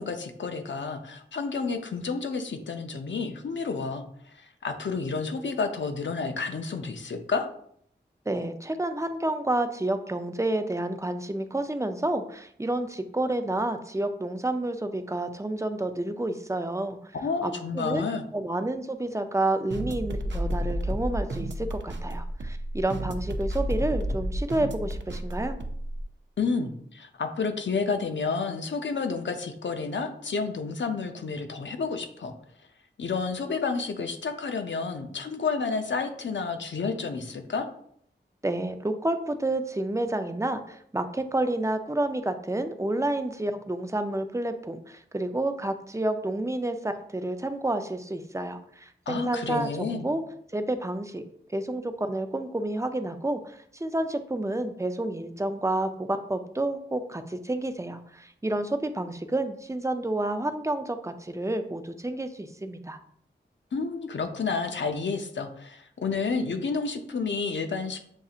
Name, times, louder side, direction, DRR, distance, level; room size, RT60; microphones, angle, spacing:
voice 1, 0.0-7.5 17.1-18.3 26.4-32.3 33.0-37.7 49.1-50.1 63.7-68.0, left 4 dB, 75° left, 6 dB, 0.6 m, -30 dB
voice 2, 8.3-17.0 17.4-18.0 18.3-25.6 38.4-50.2 50.5-51.2 51.5-63.0, right 1 dB, 15° right, 8 dB, 0.5 m, -29 dB
sound 1, 19.7-26.0, equal, 70° right, 0.5 m, -31 dB
7.1 x 2.7 x 2.4 m, 0.67 s
cardioid pair, 45°, 19 cm